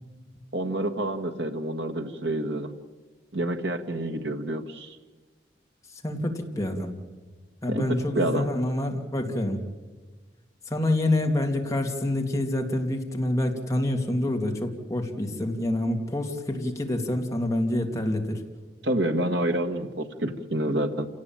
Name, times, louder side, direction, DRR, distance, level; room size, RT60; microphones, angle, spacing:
voice 1, 0.5-2.7 3.3-5.0 7.7-8.5 18.8-21.1, right 1 dB, 80° right, 5 dB, 1.7 m, -28 dB
voice 2, 6.0-6.9 7.6-9.6 10.7-18.4, left 1 dB, 20° left, 1 dB, 2.7 m, -27 dB
28.5 x 17.5 x 9.0 m, 1.3 s
head